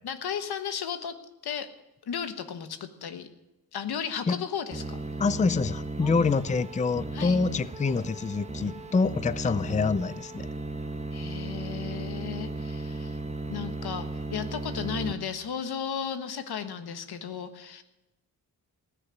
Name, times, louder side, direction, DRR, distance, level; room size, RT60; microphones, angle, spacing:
voice 1, 0.0-1.2 1.4-1.7 2.1-3.3 3.7-5.0 6.0-6.3 7.1-7.4 11.1-13.2 13.5-17.8, left 7 dB, 85° left, 9 dB, 1.4 m, -35 dB
sound 1, 4.7-15.1, right 2 dB, 20° right, 1.4 m, -36 dB
voice 2, 5.2-10.5, left 4 dB, 20° left, 17 dB, 0.5 m, -26 dB
19.5 x 6.6 x 9.9 m, 0.96 s
cardioid pair, 70°, 37 cm